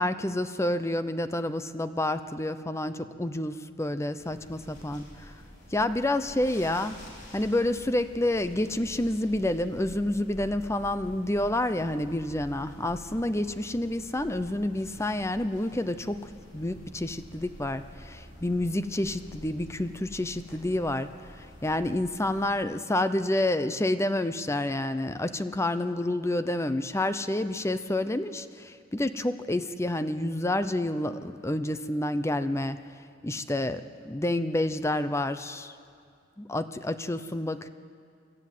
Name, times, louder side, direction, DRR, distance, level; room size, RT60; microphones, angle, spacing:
voice 1, 0.0-5.3 5.7-7.0 7.3-16.3 16.5-21.1 21.4-32.8 33.2-35.7 36.4-37.7, left 1 dB, 15° left, 11 dB, 0.6 m, -29 dB
sound 1, 4.2-22.6, equal, 60° left, 5.4 m, -48 dB
24.5 x 13.0 x 9.3 m, 2.3 s
head